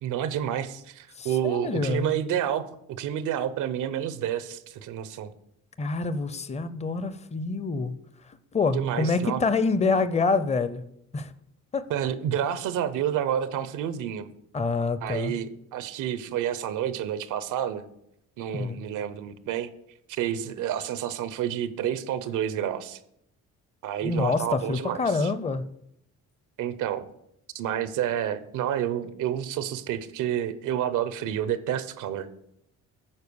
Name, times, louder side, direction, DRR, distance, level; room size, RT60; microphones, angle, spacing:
voice 1, 0.0-5.3 8.7-9.4 11.9-14.3 15.0-17.8 18.4-19.7 20.1-23.0 23.8-25.3 26.6-27.1 27.5-32.5, right 10 dB, 85° right, 0.8 m, -29 dB
voice 2, 1.2-2.1 5.8-7.9 8.2-10.8 11.1-11.3 11.7-11.9 14.5-15.3 18.5-18.8 24.0-25.6, left 4 dB, 20° left, 0.6 m, -26 dB
9.8 x 4.5 x 6.9 m
cardioid pair, 90°, 30 cm